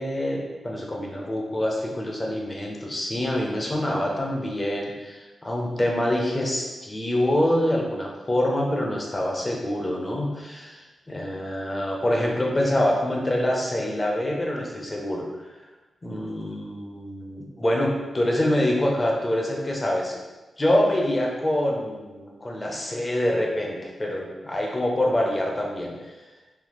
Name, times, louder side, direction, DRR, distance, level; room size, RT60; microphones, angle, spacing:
voice 1, 0.0-15.3 16.0-20.1 20.6-26.1, left 1 dB, 20° left, -1 dB, 0.5 m, -25 dB
3.3 x 2.1 x 2.9 m, 1.2 s
wide cardioid pair, 130°, 0 cm